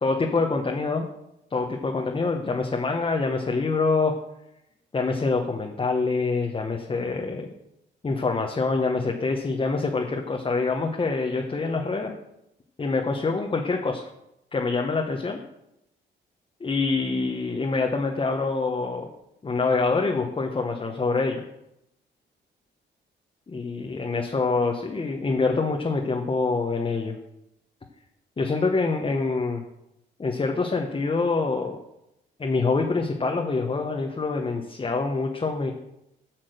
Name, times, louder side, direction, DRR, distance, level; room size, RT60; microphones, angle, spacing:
voice 1, 0.0-1.0 1.5-4.1 4.9-7.5 8.0-12.1 12.8-14.0 14.5-15.4 16.6-19.1 19.4-21.4 23.5-27.2 28.4-29.6 30.2-31.8 32.4-35.7, left 3 dB, 25° left, 2 dB, 1.1 m, -25 dB
8.8 x 5.9 x 6.6 m, 0.84 s
cardioid pair, 90°, 20 cm